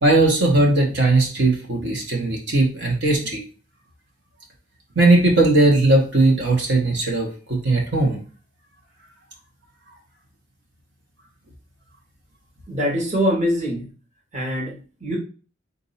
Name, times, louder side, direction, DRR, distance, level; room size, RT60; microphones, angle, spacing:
voice 1, 0.0-3.4 5.0-8.2, right 2 dB, 60° right, -1 dB, 1.0 m, -18 dB
voice 2, 12.7-13.9 14.3-15.2, equal, 35° right, -2 dB, 1.1 m, -23 dB
4.0 x 2.6 x 4.0 m, 0.38 s
head